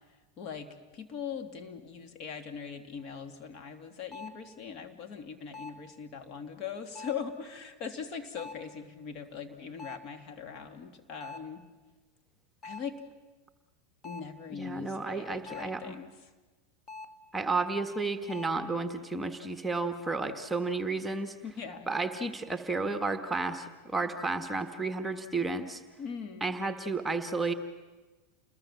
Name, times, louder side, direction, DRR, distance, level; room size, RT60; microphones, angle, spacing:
voice 1, 0.4-11.6 12.6-13.0 14.0-16.3 21.4-21.9 26.0-26.5, left 6 dB, 45° left, 7 dB, 2.7 m, -41 dB
sound 1, 3.0-3.1 4.1-4.5 5.5-5.9 6.9-7.3 8.4-8.7 9.8-10.2 11.2-11.6 12.6-13.0 14.0-14.4 15.5-15.9 16.9-17.3 18.3-18.7, left 3 dB, 25° left, 1.7 m, -45 dB
voice 2, 14.5-15.9 17.3-21.3 21.9-25.8 26.4-27.5, right 3 dB, 10° right, 7 dB, 1.6 m, -32 dB
28.5 x 21.0 x 7.5 m, 1.3 s
hypercardioid pair, 95°, 0 cm